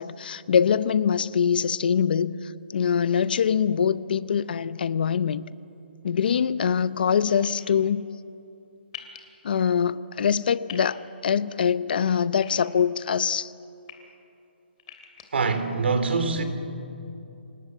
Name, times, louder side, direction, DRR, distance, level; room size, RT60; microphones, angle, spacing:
voice 1, 0.0-5.5 6.0-8.1 9.4-13.5, left 7 dB, 55° left, 0.7 m, -24 dB
sound 1, 7.4-7.6 8.9-9.2 10.7-10.9 12.4-13.0 13.6-13.9 14.8-15.2, left 10 dB, 35° left, 2.9 m, -42 dB
voice 2, 15.3-16.4, right 4 dB, 80° right, 3.2 m, -24 dB
27.0 x 18.5 x 8.1 m
hypercardioid pair, 165°, 6 cm